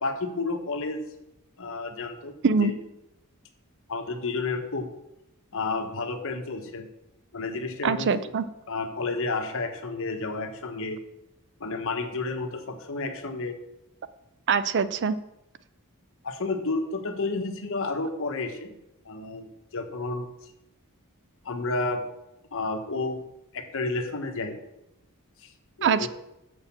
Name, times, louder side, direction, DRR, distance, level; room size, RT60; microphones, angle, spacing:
voice 1, 0.0-1.0 1.6-2.4 2.6-2.7 3.9-4.9 5.5-6.9 7.3-8.3 8.7-11.0 11.6-13.6 16.2-18.7 19.0-20.3 21.4-22.0 22.5-23.2 23.5-24.6 25.4-25.5 25.8-26.1, left 3 dB, 65° left, 6 dB, 1.2 m, -31 dB
voice 2, 7.8-8.4 14.5-15.2 25.8-26.1, right 5 dB, 55° right, 14 dB, 0.5 m, -23 dB
6.5 x 6.3 x 7.2 m, 0.88 s
head